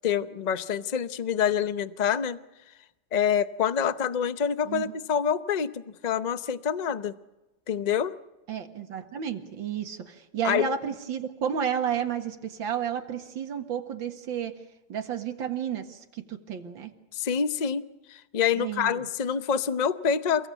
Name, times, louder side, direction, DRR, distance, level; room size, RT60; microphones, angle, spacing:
voice 1, 0.0-2.4 3.1-7.2 7.7-8.1 10.4-10.8 17.1-20.5, left 7 dB, 60° left, 12 dB, 0.4 m, -26 dB
voice 2, 8.5-14.5 14.9-16.9 18.6-19.0, right 8 dB, 80° right, 5 dB, 2.4 m, -32 dB
28.5 x 17.5 x 8.3 m, 1.0 s
omnidirectional pair, 2.1 m